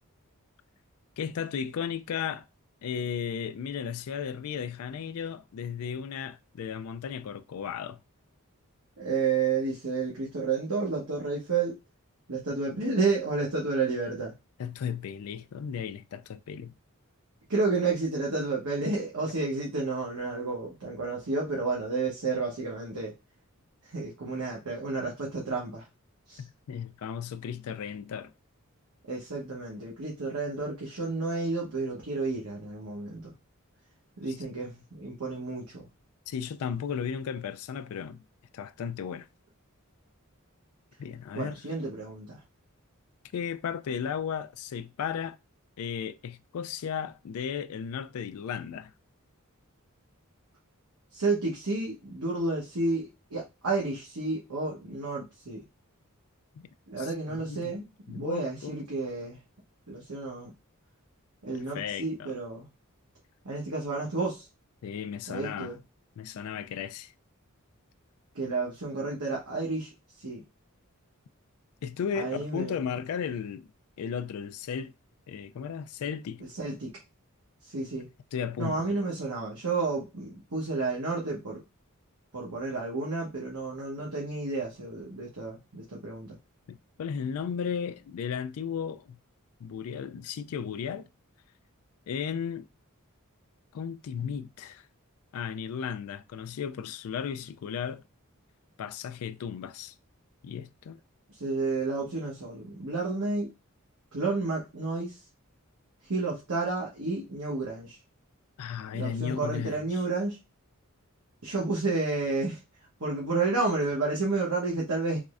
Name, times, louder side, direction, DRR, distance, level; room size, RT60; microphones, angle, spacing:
voice 1, 1.2-2.4 2.8-8.0 14.6-16.7 26.4-28.3 34.3-34.4 36.3-38.2 38.5-39.3 41.0-41.7 43.3-45.4 45.8-48.9 57.0-57.7 58.1-58.8 61.7-62.3 64.8-65.8 66.2-67.1 71.8-73.7 74.0-74.9 75.3-76.4 78.3-79.0 86.7-89.2 89.6-91.1 92.1-92.7 93.7-94.9 95.3-98.0 98.8-99.9 100.4-101.0 108.6-110.0, left 7 dB, 80° left, 0.3 m, -35 dB
voice 2, 9.0-11.7 12.3-14.3 17.5-23.1 23.9-25.8 26.3-26.4 29.1-33.3 34.2-35.9 41.3-42.4 51.1-55.6 56.9-59.4 59.9-60.5 61.4-62.7 63.4-64.5 65.3-65.8 68.3-69.9 70.2-70.4 72.1-72.8 76.6-76.9 77.7-78.1 78.6-81.6 82.3-86.4 101.4-103.5 104.1-105.2 106.1-108.0 108.9-110.4 111.4-112.6 113.0-115.2, right 3 dB, 85° right, 1.1 m, -31 dB
3.7 x 3.1 x 2.4 m
head